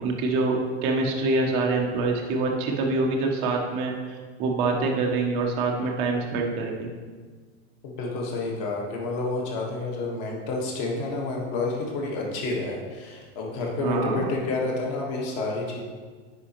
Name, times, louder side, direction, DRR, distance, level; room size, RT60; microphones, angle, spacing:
voice 1, 0.0-3.9 4.4-6.9 13.8-14.3, right 3 dB, 15° right, 0 dB, 0.4 m, -25 dB
voice 2, 7.8-15.8, left 2 dB, 35° left, -1 dB, 1.3 m, -29 dB
9.7 x 4.9 x 2.9 m, 1.5 s
supercardioid pair, 170°, 36 cm